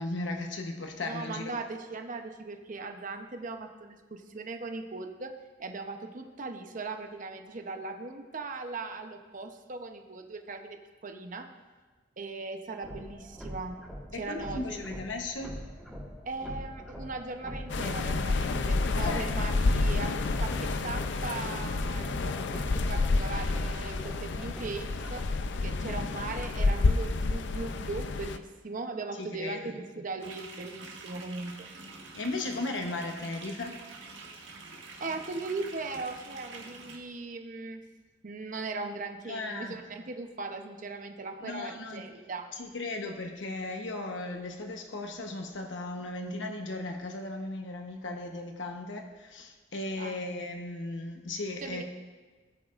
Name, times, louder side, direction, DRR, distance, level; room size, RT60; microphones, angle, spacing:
voice 1, 0.0-1.6 14.1-15.6 19.0-19.5 25.8-26.1 29.2-29.7 32.1-33.8 39.3-39.8 41.4-42.0 42.5-51.8, left 2 dB, 85° left, 3 dB, 1.0 m, -36 dB
voice 2, 1.0-5.3 5.6-10.8 11.0-11.5 12.2-13.8 14.1-14.9 16.3-22.3 22.6-25.3 25.6-31.7 35.0-37.8 38.2-42.5 50.0-50.2 51.6-51.8, right 3 dB, 45° right, 5 dB, 0.8 m, -39 dB
sound 1, 12.8-26.5, equal, ahead, 1.6 m, -43 dB
sound 2, 17.7-28.4, left 3 dB, 70° left, 0.5 m, -29 dB
sound 3, 30.2-37.0, right 3 dB, 90° right, 1.5 m, -46 dB
17.5 x 8.4 x 2.5 m, 1.3 s
head